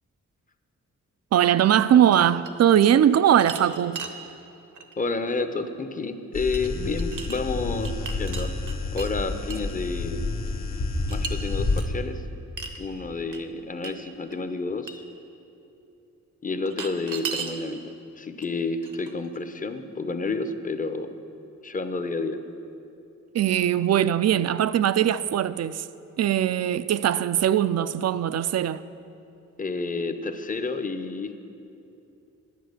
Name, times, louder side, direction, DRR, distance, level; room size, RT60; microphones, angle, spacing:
voice 1, 1.3-4.0 23.3-25.9 26.2-28.8, right 10 dB, 55° right, 0.4 m, -21 dB
sound 1, 2.1-3.0 3.3-4.2 4.7-4.9 6.5-6.7 7.0-7.4 7.8-9.1 9.5-9.7 11.1-11.3 11.8-11.9 12.6-12.8 13.3-13.4 13.8-13.9 14.3-14.4 14.9-15.0 16.7-17.6 18.4-18.5 18.8-19.4, right 5 dB, 80° right, 1.0 m, -36 dB
voice 2, 5.0-8.5 8.9-10.3 11.1-12.2 12.8-15.0 16.4-21.1 21.6-22.4 29.6-31.3, left 3 dB, 25° left, 0.7 m, -30 dB
sound 2, 6.3-11.8, left 3 dB, 60° left, 1.2 m, -29 dB
10.5 x 9.2 x 6.6 m
cardioid pair, 100°, 30 cm